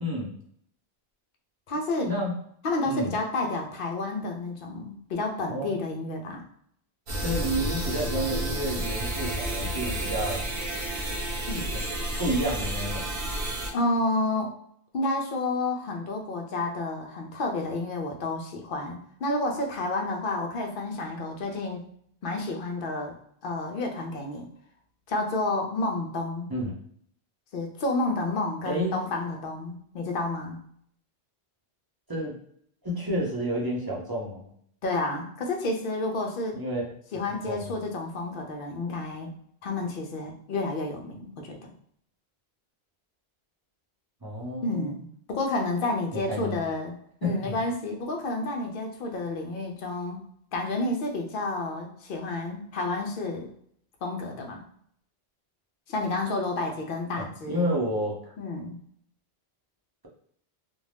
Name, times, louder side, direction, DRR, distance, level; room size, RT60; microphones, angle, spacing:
voice 1, 0.0-0.3 2.0-2.3 2.8-3.2 5.5-5.8 7.2-10.5 11.7-11.9 12.2-13.1 26.5-26.7 28.6-29.0 32.1-32.3 32.8-34.5 36.5-36.8 37.5-37.7 44.2-44.9 46.1-46.6 47.2-47.6 57.1-58.3, equal, 30° right, -5 dB, 0.5 m, -30 dB
voice 2, 1.7-2.1 2.6-6.4 11.5-11.7 13.7-14.5 14.9-21.8 22.2-23.2 23.4-24.5 25.1-26.5 27.5-30.6 34.8-36.6 37.1-39.3 39.6-41.7 44.6-50.2 50.5-53.5 54.0-54.6 55.9-57.7 58.4-58.8, left 2 dB, 60° left, 1 dB, 0.7 m, -30 dB
sound 1, 7.1-13.7, right 1 dB, 65° right, 0.9 m, -31 dB
2.6 x 2.1 x 3.3 m, 0.66 s
omnidirectional pair, 1.1 m